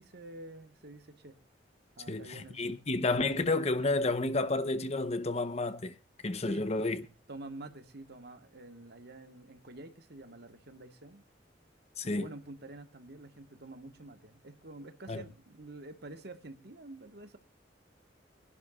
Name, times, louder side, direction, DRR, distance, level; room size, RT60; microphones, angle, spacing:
voice 1, 0.0-1.4 2.0-2.8 6.5-6.7 7.3-11.2 12.0-17.4, right 2 dB, 60° right, 1.5 m, -48 dB
voice 2, 2.1-6.0 6.2-7.0 12.0-12.3 15.1-15.2, left 2 dB, 35° left, 0.9 m, -31 dB
23.0 x 11.0 x 2.4 m
head